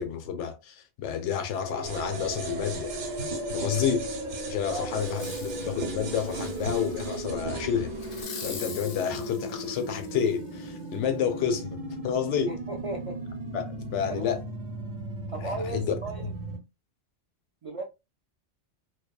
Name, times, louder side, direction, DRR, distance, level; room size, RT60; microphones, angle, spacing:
voice 1, 0.0-2.9 3.5-4.1 4.5-7.9 8.4-11.8 12.0-12.5 13.5-14.4 15.4-16.0 16.2-16.3, left 8 dB, 85° left, 0.9 m, -30 dB
sound 1, 1.7-16.6, right 1 dB, 45° right, 0.8 m, -36 dB
sound 2, 1.8-8.2, right 4 dB, 80° right, 1.0 m, -39 dB
Fireworks, 5.0-5.6 6.1-7.2 8.0-10.4 10.9-11.0, left 5 dB, 55° left, 0.7 m, -43 dB
voice 2, 12.5-13.2 14.1-14.4 15.3-16.3 17.6-17.8, right 2 dB, 60° right, 0.3 m, -35 dB
2.8 x 2.2 x 2.2 m
omnidirectional pair, 1.2 m